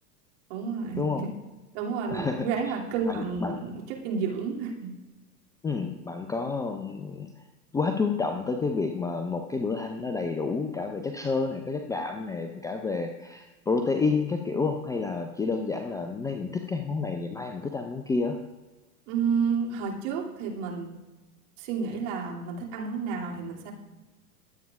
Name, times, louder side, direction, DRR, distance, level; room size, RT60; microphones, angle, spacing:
voice 1, 0.5-1.3 1.7-4.9 19.1-20.9 21.6-23.7, right 5 dB, 50° right, -1 dB, 2.8 m, -30 dB
voice 2, 2.1-2.5 3.1-3.6 5.6-7.3 7.7-18.4, left 4 dB, 10° left, 5 dB, 0.5 m, -29 dB
23.5 x 8.5 x 2.5 m, 1.2 s
figure-of-eight pair, 90°, 46 cm